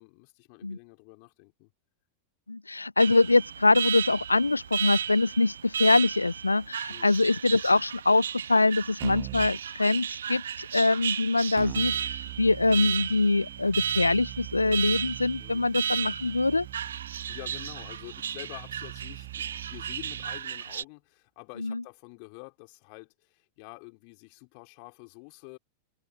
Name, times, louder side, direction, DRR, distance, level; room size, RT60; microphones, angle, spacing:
voice 1, 0.0-1.7 6.9-7.2 15.4-15.6 17.3-25.6, left 40 dB or more, 45° left, 4.7 m, -47 dB
voice 2, 2.5-16.7 21.6-21.8, left 3 dB, 80° left, 0.8 m, -24 dB
Alarm, 3.0-20.8, right 8 dB, 65° right, 0.5 m, -34 dB
Keyboard (musical), 9.0-9.6 11.6-20.4, right 31 dB, 45° right, 1.2 m, -42 dB
open air
figure-of-eight pair, 90°, 0 cm